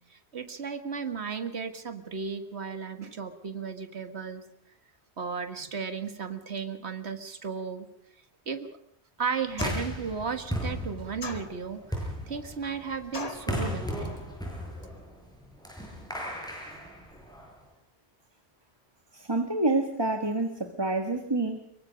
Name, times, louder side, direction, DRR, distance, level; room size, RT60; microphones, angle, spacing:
voice 1, 0.1-4.4 5.2-7.9 8.5-8.8 9.2-14.2, right 6 dB, 70° right, 8 dB, 2.0 m, -35 dB
sound 1, 9.5-17.6, equal, 5° left, 7.8 m, -36 dB
sound 2, 9.6-10.1 11.2-11.9 13.1-13.5, left 3 dB, 35° left, 1.8 m, -37 dB
voice 2, 19.1-21.6, right 2 dB, 20° right, 6 dB, 1.6 m, -27 dB
25.0 x 23.5 x 5.2 m, 0.70 s
omnidirectional pair, 1.1 m